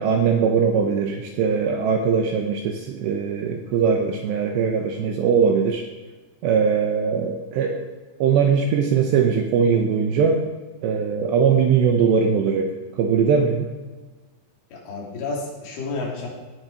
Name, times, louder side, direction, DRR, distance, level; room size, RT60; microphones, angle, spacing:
voice 1, 0.0-5.8 6.4-7.9 8.2-10.5 10.8-13.7, right 6 dB, 75° right, 4 dB, 2.6 m, -20 dB
voice 2, 14.7-16.3, left 3 dB, 65° left, -3 dB, 5.6 m, -30 dB
18.0 x 9.5 x 5.1 m, 1.3 s
omnidirectional pair, 5.9 m